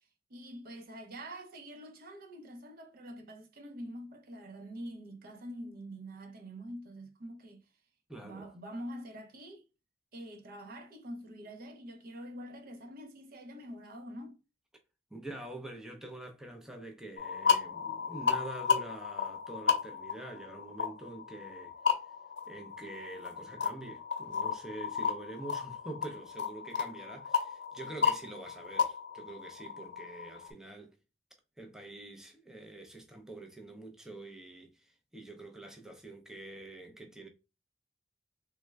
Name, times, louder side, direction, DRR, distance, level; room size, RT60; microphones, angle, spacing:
voice 1, 0.3-7.6 8.2-9.6 10.1-14.4, equal, 50° right, 0.6 m, -45 dB
voice 2, 8.1-8.5 15.1-21.7 22.0-22.1 22.5-30.9 31.6-37.3, right 2 dB, 5° right, 0.5 m, -46 dB
sound 1, 17.2-30.5, left 6 dB, 65° left, 0.7 m, -34 dB
3.3 x 2.1 x 3.3 m
head